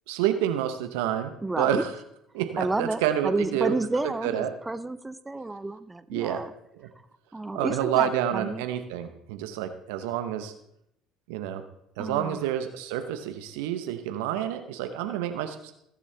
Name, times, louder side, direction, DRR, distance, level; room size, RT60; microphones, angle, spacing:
voice 1, 0.1-1.9 2.3-3.7 4.2-4.5 6.1-6.4 6.8-6.9 7.5-10.5 11.3-11.6 12.0-15.7, right 10 dB, 75° right, 8 dB, 0.9 m, -28 dB
voice 2, 1.4-1.8 2.6-6.5 7.3-8.6 12.0-12.4, right 2 dB, 15° right, 14 dB, 0.8 m, -30 dB
17.5 x 7.3 x 3.4 m, 0.77 s
hypercardioid pair, 60°, 0 cm